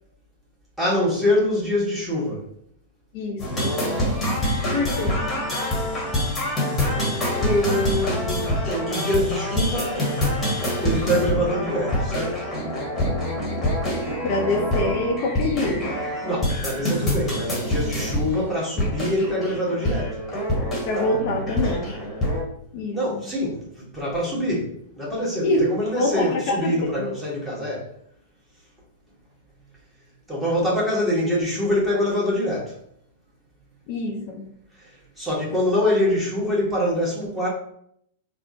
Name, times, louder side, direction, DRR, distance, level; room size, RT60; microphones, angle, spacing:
voice 1, 0.8-2.5 7.2-10.1 10.8-12.4 16.2-20.2 22.9-27.9 30.3-32.8 34.7-37.5, left 1 dB, 5° right, -6 dB, 1.3 m, -25 dB
voice 2, 3.1-3.7 4.7-5.2 14.2-15.9 20.8-21.8 22.7-23.2 25.4-27.1 33.9-34.4, left 2 dB, 50° left, 0 dB, 0.6 m, -25 dB
sound 1, 3.4-22.4, left 1 dB, 15° left, 1.2 m, -25 dB
3.5 x 2.1 x 2.7 m, 0.70 s
figure-of-eight pair, 100°, 0 cm